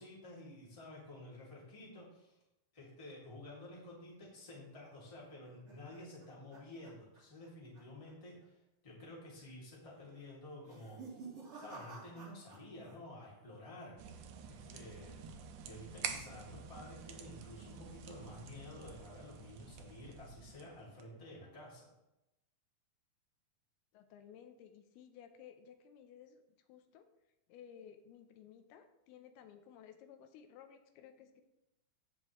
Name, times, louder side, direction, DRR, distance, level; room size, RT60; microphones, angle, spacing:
voice 1, 0.0-2.4 2.7-11.2 11.6-14.2 14.5-15.2 15.6-21.9, left 1 dB, 10° left, -6 dB, 1.8 m, -51 dB
sound 1, 5.0-7.5 7.7-8.1 8.4-8.5 9.3-9.7 10.5-13.0 13.2-13.8, right 4 dB, 40° right, 4.0 m, -53 dB
sound 2, 14.0-21.0, right 7 dB, 80° right, 1.8 m, -48 dB
voice 2, 23.9-26.4 26.7-27.1 27.5-31.4, left 8 dB, 85° left, 7 dB, 2.7 m, -56 dB
14.5 x 5.3 x 3.1 m, 0.93 s
omnidirectional pair, 4.4 m